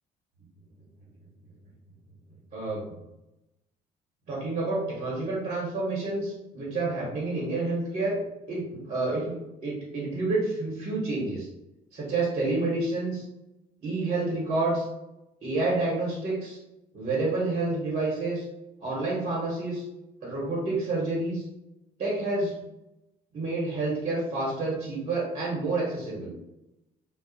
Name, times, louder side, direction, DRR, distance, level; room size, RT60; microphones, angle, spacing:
voice 1, 2.5-3.0 4.3-8.2 8.5-9.3 9.6-11.5 11.9-13.2 13.8-14.8 15.4-16.6 16.9-18.4 18.8-19.8 20.2-21.4 22.0-22.5 23.3-26.3, right 2 dB, 40° right, -5 dB, 1.0 m, -29 dB
2.6 x 2.0 x 2.4 m, 0.91 s
cardioid pair, 110°, 17 cm